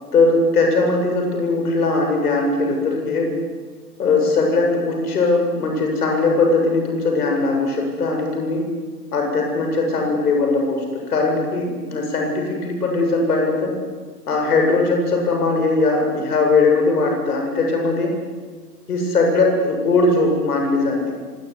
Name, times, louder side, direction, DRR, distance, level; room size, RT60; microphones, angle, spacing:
voice 1, 0.1-3.3 4.0-8.7 9.1-13.8 14.3-18.2 18.9-21.2, left 3 dB, 65° left, 2 dB, 8.0 m, -19 dB
25.0 x 19.0 x 9.8 m, 1.5 s
figure-of-eight pair, 120°, 50 cm